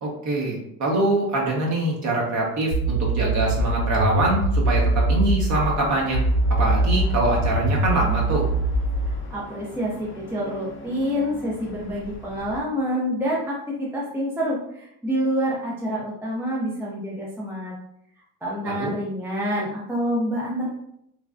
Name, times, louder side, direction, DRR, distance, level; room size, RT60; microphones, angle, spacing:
voice 1, 0.0-6.2 6.6-8.5 18.6-18.9, right 2 dB, 40° right, -2 dB, 1.2 m, -24 dB
sound 1, 2.7-5.7 6.1-9.1, right 2 dB, 90° right, 0.7 m, -22 dB
sound 2, 5.6-12.6, left 3 dB, 30° left, 0.7 m, -40 dB
voice 2, 9.0-17.7 18.4-20.7, equal, 5° right, -4 dB, 0.6 m, -27 dB
3.3 x 2.2 x 2.5 m, 0.75 s
supercardioid pair, 90°, 43 cm